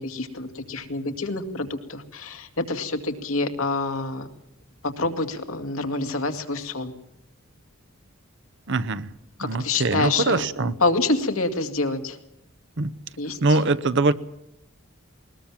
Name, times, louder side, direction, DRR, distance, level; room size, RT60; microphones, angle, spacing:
voice 1, 0.0-4.3 4.8-6.9 9.4-12.2 13.2-13.6, left 3 dB, 85° left, 6 dB, 2.2 m, -27 dB
voice 2, 8.7-9.1 9.4-10.7 12.8-13.0 13.4-14.1, right 3 dB, 60° right, 14 dB, 0.8 m, -22 dB
20.5 x 20.0 x 7.4 m, 0.82 s
head